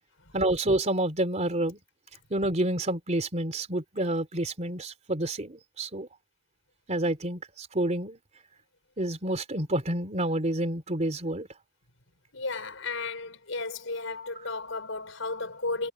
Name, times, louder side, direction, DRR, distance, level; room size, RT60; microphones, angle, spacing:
voice 1, 0.3-1.8 2.3-6.1 6.9-8.2 9.0-11.5, right 1 dB, 35° right, 3.3 m, -28 dB
voice 2, 12.3-15.9, left 3 dB, 80° left, 5.2 m, -34 dB
head